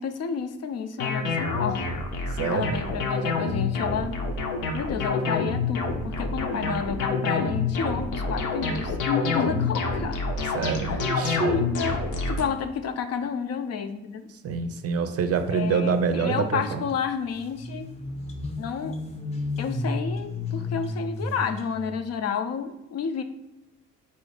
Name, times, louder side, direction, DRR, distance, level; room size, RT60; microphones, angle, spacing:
voice 1, 0.0-1.9 2.5-4.3 4.7-10.2 10.8-11.1 11.5-14.3 15.5-18.0 18.6-19.0 19.6-23.2, left 6 dB, 55° left, 8 dB, 0.5 m, -31 dB
sound 1, 1.0-12.4, left 4 dB, 80° left, 0.8 m, -27 dB
voice 2, 2.3-2.7 10.5-11.8 14.4-16.8, right 5 dB, 50° right, 9 dB, 0.5 m, -26 dB
sound 2, 16.9-17.0 17.3-22.0, left 2 dB, 20° left, 0.7 m, -32 dB
4.3 x 2.6 x 4.8 m, 0.97 s
cardioid pair, 90°, 30 cm